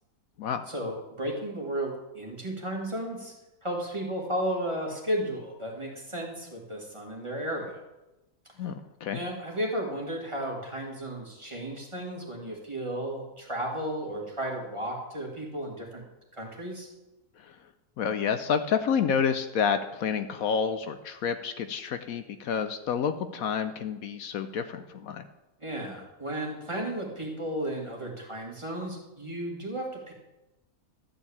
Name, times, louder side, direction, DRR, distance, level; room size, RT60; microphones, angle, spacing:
voice 1, 0.7-3.3 3.6-7.8 9.1-16.0 16.3-16.9 25.6-30.1, right 1 dB, 20° right, -1 dB, 2.0 m, -34 dB
voice 2, 8.6-9.2 17.4-17.5 18.0-25.2, left 7 dB, 75° left, 9 dB, 1.1 m, -29 dB
12.5 x 4.5 x 8.4 m, 1.0 s
omnidirectional pair, 1.6 m